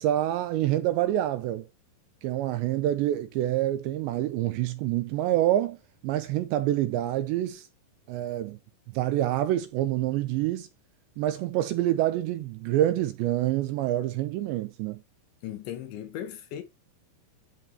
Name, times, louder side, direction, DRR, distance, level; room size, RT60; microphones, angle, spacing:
voice 1, 0.0-1.7 2.2-5.8 6.0-7.7 8.1-8.6 8.9-10.7 11.2-15.0, right 13 dB, 80° right, 2.7 m, -27 dB
voice 2, 15.4-16.6, left 11 dB, 70° left, 3.5 m, -37 dB
13.0 x 8.1 x 3.1 m
omnidirectional pair, 5.8 m